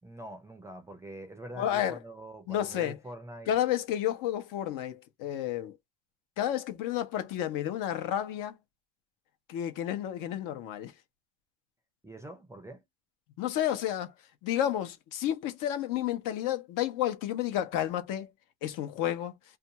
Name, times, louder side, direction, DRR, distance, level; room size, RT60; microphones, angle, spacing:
voice 1, 0.0-3.5 12.0-12.8, right 1 dB, 10° right, 0.4 m, -44 dB
voice 2, 1.6-2.0 2.5-3.0 3.5-5.7 6.4-8.5 9.5-10.9 13.4-14.1 14.4-18.3 18.6-19.3, left 11 dB, 65° left, 0.7 m, -31 dB
2.4 x 2.3 x 2.7 m
cardioid pair, 140°, 35 cm